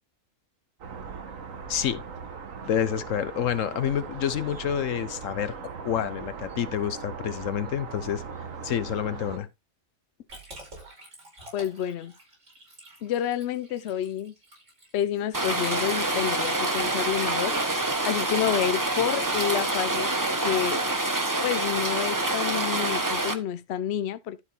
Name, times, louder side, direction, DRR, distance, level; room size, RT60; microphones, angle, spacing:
sound 1, 0.8-9.4, right 5 dB, 90° right, 1.6 m, -39 dB
voice 1, 1.7-2.0 2.6-5.6 5.8-8.2 8.6-9.5, left 9 dB, 80° left, 1.2 m, -28 dB
Liquid, 10.3-19.9, right 1 dB, 70° right, 5.4 m, -49 dB
voice 2, 11.5-12.1 13.0-14.3 14.9-20.1 20.4-20.8 21.4-24.4, left 10 dB, 60° left, 0.8 m, -29 dB
Rain, 15.3-23.3, right 2 dB, 15° right, 1.0 m, -26 dB
12.0 x 4.3 x 4.4 m
omnidirectional pair, 1.3 m